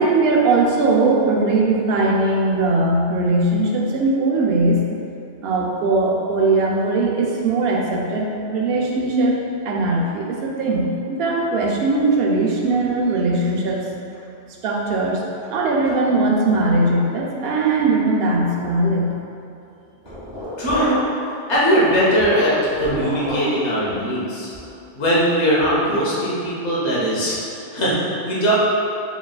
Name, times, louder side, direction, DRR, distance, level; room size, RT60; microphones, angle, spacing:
voice 1, 0.0-4.9 5.4-9.3 9.6-13.8 14.6-15.2 15.5-19.2, right 2 dB, 65° right, -1 dB, 0.8 m, -19 dB
sound 1, 20.0-21.2 21.5-23.6 23.9-24.1 24.5-24.8 25.2-25.3 25.6-25.8, equal, 30° right, 1.0 m, -31 dB
voice 2, 20.6-21.0 21.5-24.5 24.9-27.4 27.7-28.5, equal, 70° left, -7 dB, 1.1 m, -20 dB
4.6 x 3.2 x 2.2 m, 2.6 s
omnidirectional pair, 1.2 m